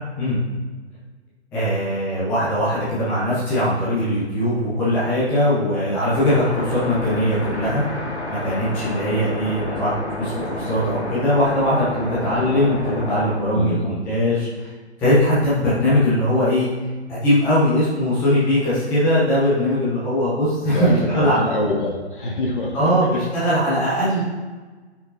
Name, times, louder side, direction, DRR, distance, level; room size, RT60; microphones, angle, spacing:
voice 1, 1.5-7.8 8.4-14.7 15.0-16.7 17.1-21.5 22.7-24.2, equal, 5° left, -9 dB, 0.7 m, -20 dB
sound 1, 6.0-13.4, left 1 dB, 75° left, 1.8 m, -29 dB
voice 2, 13.5-13.9 20.7-22.9, left 2 dB, 45° left, -1 dB, 1.7 m, -25 dB
11.5 x 4.9 x 2.6 m, 1.3 s
figure-of-eight pair, 135°, 35 cm